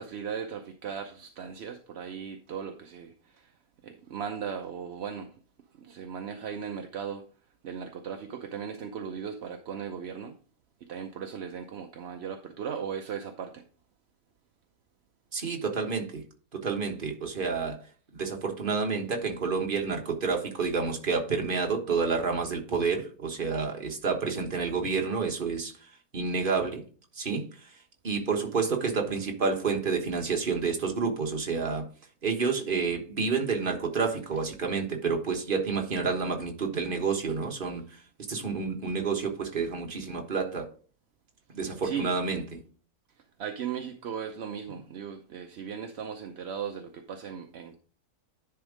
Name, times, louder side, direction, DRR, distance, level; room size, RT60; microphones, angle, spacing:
voice 1, 0.0-3.5 3.8-5.4 5.8-7.3 7.6-10.3 10.9-13.6 41.8-42.1 43.4-47.8, right 7 dB, 55° right, 0.8 m, -37 dB
voice 2, 15.3-16.2 16.5-17.8 18.1-26.8 27.1-27.8 28.0-31.9 32.2-38.0 38.3-40.7 41.5-42.6, right 5 dB, 35° right, 1.4 m, -29 dB
10.5 x 3.6 x 4.9 m
omnidirectional pair, 1.6 m